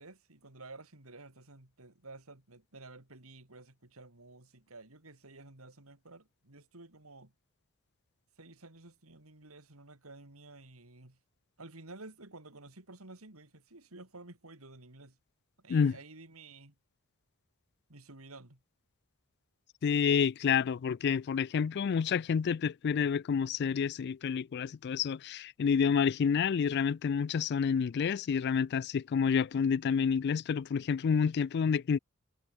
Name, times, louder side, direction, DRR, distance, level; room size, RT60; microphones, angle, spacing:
voice 1, 0.0-7.3 8.4-11.2 11.6-15.2 15.6-16.7 17.9-18.6, right 2 dB, 90° right, 3.5 m, -52 dB
voice 2, 19.8-32.0, left 6 dB, 50° left, 0.3 m, -29 dB
head